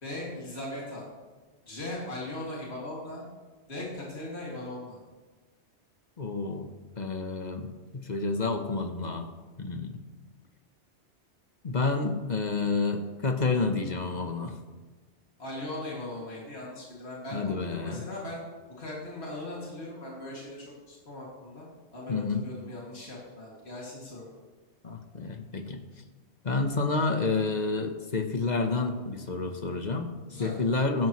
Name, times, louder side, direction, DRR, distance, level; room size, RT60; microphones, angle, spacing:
voice 1, 0.0-1.1 1.7-3.2 3.7-5.0 15.4-18.4 18.8-21.7 21.9-24.3 30.3-30.5, left 1 dB, 60° left, -5 dB, 2.7 m, -39 dB
voice 2, 6.2-6.7 7.0-9.3 9.6-10.0 11.6-14.6 17.3-18.0 22.1-22.5 24.8-25.8 26.4-30.1 30.4-31.1, left 3 dB, 40° left, 6 dB, 1.1 m, -29 dB
15.0 x 12.5 x 3.2 m, 1.3 s
omnidirectional pair, 1.2 m